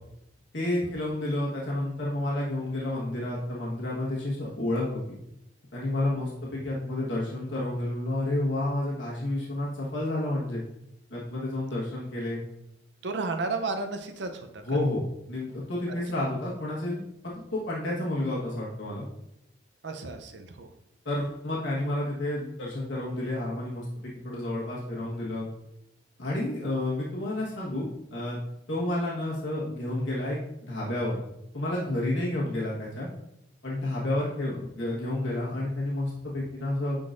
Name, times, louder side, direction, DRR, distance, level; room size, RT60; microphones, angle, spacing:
voice 1, 0.5-5.0 5.7-10.6 11.1-12.4 14.6-19.0 21.0-25.5 26.2-28.4 28.7-31.2 31.5-33.1 33.6-37.0, left 1 dB, 80° left, -5 dB, 1.4 m, -30 dB
voice 2, 13.0-14.8 15.9-16.0 19.8-20.7, right 3 dB, 70° right, 6 dB, 0.6 m, -33 dB
9.4 x 3.9 x 2.5 m, 0.83 s
head